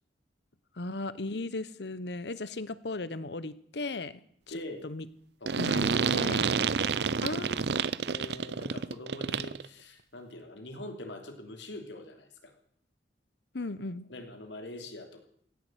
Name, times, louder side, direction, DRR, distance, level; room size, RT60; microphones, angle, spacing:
voice 1, 0.8-4.1 4.8-5.0 5.6-6.4 7.2-7.7 13.5-14.1, left 2 dB, 70° left, 16 dB, 0.9 m, -36 dB
voice 2, 4.5-4.9 5.4-5.6 6.0-6.3 6.6-7.2 8.0-12.5 14.1-15.2, left 1 dB, 85° left, 5 dB, 3.1 m, -44 dB
sound 1, 5.5-9.7, right 5 dB, 65° right, 0.6 m, -29 dB
16.5 x 11.0 x 8.0 m, 0.65 s
head